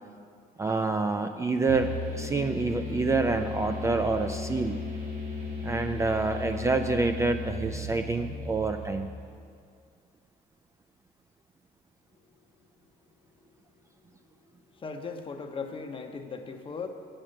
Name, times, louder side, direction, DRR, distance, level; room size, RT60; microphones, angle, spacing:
voice 1, 0.6-4.8 5.6-9.1, right 3 dB, 15° right, 6 dB, 0.3 m, -27 dB
sound 1, 1.7-9.4, left 3 dB, 85° right, 3.0 m, -36 dB
voice 2, 14.8-16.9, left 5 dB, 30° left, 5 dB, 0.9 m, -37 dB
8.9 x 7.5 x 6.5 m, 2.2 s
cardioid pair, 110°, 17 cm